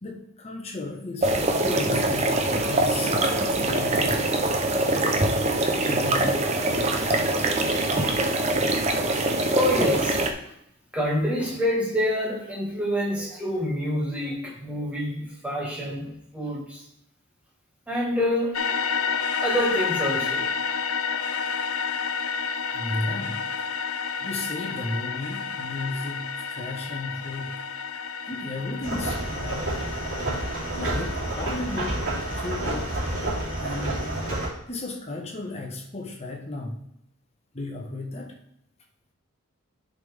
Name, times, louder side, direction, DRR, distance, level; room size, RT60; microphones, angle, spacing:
voice 1, 0.0-4.3 5.8-6.4 22.7-23.4 24.2-27.6 28.3-29.7 30.8-32.0 32.4-32.9 33.6-34.1 34.7-36.8 37.5-38.3, left 2 dB, 30° left, 1 dB, 1.2 m, -34 dB
sound 1, 1.2-10.3, right 2 dB, 30° right, 0.7 m, -23 dB
voice 2, 9.5-10.2 10.9-16.8 17.9-20.5 21.1-21.4, equal, 5° right, -3 dB, 1.8 m, -27 dB
sound 2, 18.5-34.5, left 6 dB, 90° left, 0.6 m, -31 dB
sound 3, 28.8-34.5, right 1 dB, 65° right, 3.1 m, -29 dB
10.0 x 5.4 x 3.5 m, 0.78 s
head